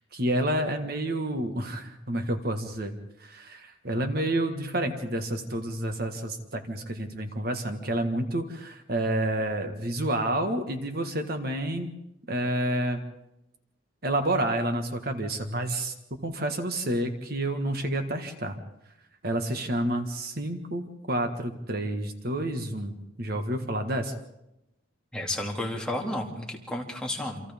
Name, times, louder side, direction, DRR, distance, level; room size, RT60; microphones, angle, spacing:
voice 1, 0.1-2.9 3.2-11.9 12.3-13.0 14.0-15.9 16.2-18.6 19.2-24.1, right 1 dB, 50° right, 5 dB, 1.6 m, -29 dB
voice 2, 25.1-27.4, left 1 dB, 5° left, -1 dB, 2.4 m, -32 dB
28.5 x 26.0 x 3.6 m, 0.89 s
head